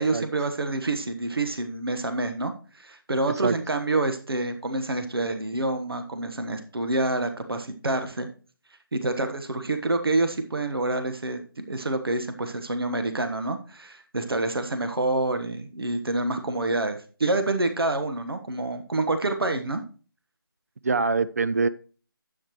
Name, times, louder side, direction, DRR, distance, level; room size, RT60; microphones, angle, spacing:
voice 1, 0.0-8.3 8.9-19.8, right 2 dB, 80° right, 7 dB, 1.3 m, -27 dB
voice 2, 3.3-3.6 20.8-21.7, right 4 dB, 40° right, 15 dB, 0.4 m, -24 dB
10.0 x 8.3 x 3.1 m, 0.37 s
figure-of-eight pair, 160°, 12 cm